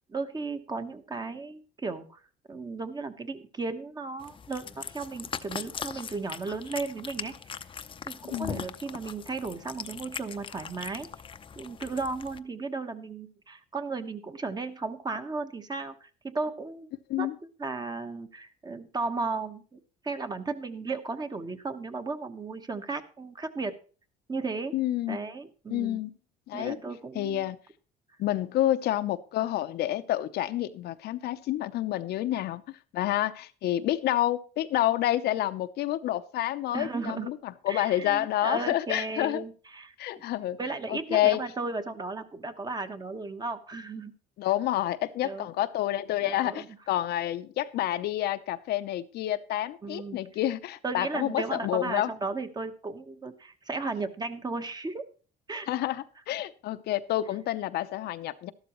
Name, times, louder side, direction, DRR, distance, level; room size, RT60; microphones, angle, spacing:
voice 1, 0.1-2.2 2.5-7.3 8.0-11.1 11.6-16.9 17.2-17.3 17.6-23.7 24.3-24.7 25.1-26.0 26.5-27.4 36.7-37.3 37.7-39.9 40.6-44.1 45.2-45.5 46.3-46.7 49.8-50.2 50.8-55.0 55.5-55.7, right 3 dB, 25° right, 8 dB, 1.2 m, -35 dB
Cat, 4.2-12.4, left 7 dB, 30° left, 0.6 m, -40 dB
voice 2, 8.3-8.6 17.1-17.3 24.7-25.2 25.7-26.1 26.5-26.8 27.1-27.6 28.2-39.4 40.0-40.6 40.9-41.4 44.4-52.1 55.7-58.5, left 13 dB, 70° left, 11 dB, 0.7 m, -29 dB
13.0 x 12.0 x 3.1 m, 0.39 s
cardioid pair, 110°, 17 cm